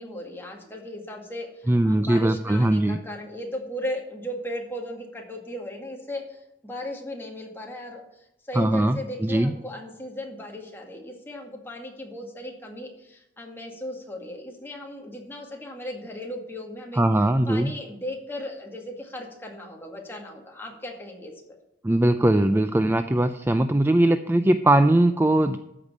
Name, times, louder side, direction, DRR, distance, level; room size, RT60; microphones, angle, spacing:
voice 1, 0.0-17.0 17.5-21.6, left 1 dB, 15° left, 0 dB, 2.2 m, -37 dB
voice 2, 1.7-3.0 8.5-9.5 17.0-17.7 21.8-25.6, right 1 dB, 10° right, 9 dB, 0.4 m, -20 dB
13.5 x 5.3 x 8.3 m, 0.84 s
head